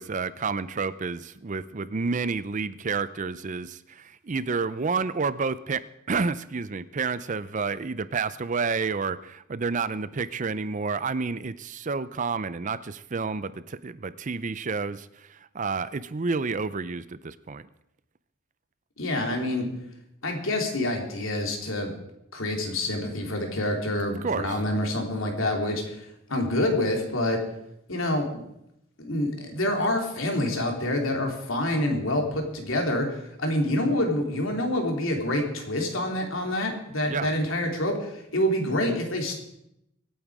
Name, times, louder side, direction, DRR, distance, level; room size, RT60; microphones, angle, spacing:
voice 1, 0.0-5.8 6.1-17.7 24.2-24.5 37.1-37.3, right 4 dB, 35° right, 15 dB, 0.5 m, -30 dB
voice 2, 19.0-19.7 20.2-21.9 22.3-26.0 26.3-27.4 27.9-28.4 29.0-39.3, left 1 dB, 70° left, 2 dB, 3.2 m, -27 dB
25.0 x 8.9 x 4.9 m, 0.82 s
head